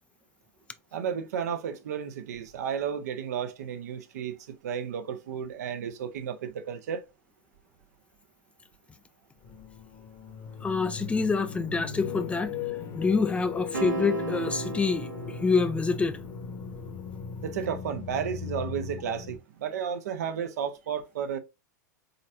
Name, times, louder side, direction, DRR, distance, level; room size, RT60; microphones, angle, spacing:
voice 1, 0.9-7.0 17.4-21.4, right 8 dB, 60° right, 0.8 m, -33 dB
sound 1, 9.4-19.4, left 6 dB, 35° left, 1.2 m, -38 dB
voice 2, 10.6-12.6 12.9-16.2, left 4 dB, 10° left, 0.4 m, -27 dB
sound 2, 13.7-16.2, right 3 dB, 80° right, 1.2 m, -34 dB
4.1 x 3.9 x 2.6 m
figure-of-eight pair, 95°, 10 cm